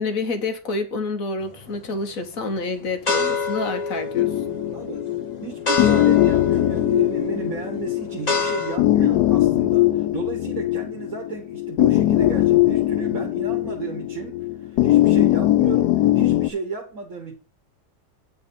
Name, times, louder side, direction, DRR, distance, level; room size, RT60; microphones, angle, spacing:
voice 1, 0.0-4.3, left 3 dB, 55° left, 1.5 m, -28 dB
sound 1, 1.4-1.9 2.4-8.8, left 4 dB, 25° left, 1.2 m, -27 dB
sound 2, 4.1-16.5, left 15 dB, 75° left, 1.1 m, -20 dB
voice 2, 4.7-5.0 5.4-9.8 10.1-14.4 14.8-17.4, right 5 dB, 55° right, 1.6 m, -33 dB
8.7 x 4.4 x 6.9 m
omnidirectional pair, 1.8 m